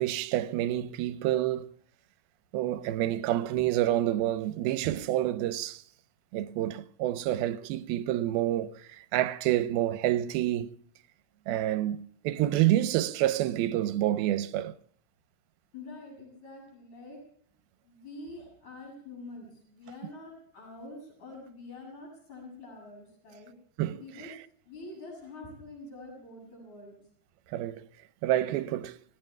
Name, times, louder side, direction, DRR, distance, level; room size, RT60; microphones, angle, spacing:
voice 1, 0.0-1.7 2.5-5.8 6.3-10.8 11.5-14.8 23.8-24.3 27.5-27.9 28.2-29.0, right 13 dB, 80° right, 2.5 m, -28 dB
voice 2, 15.7-17.2 17.8-23.5 24.0-24.3 24.7-27.0, left 2 dB, 45° left, 9.2 m, -46 dB
29.5 x 19.0 x 2.3 m
omnidirectional pair, 4.6 m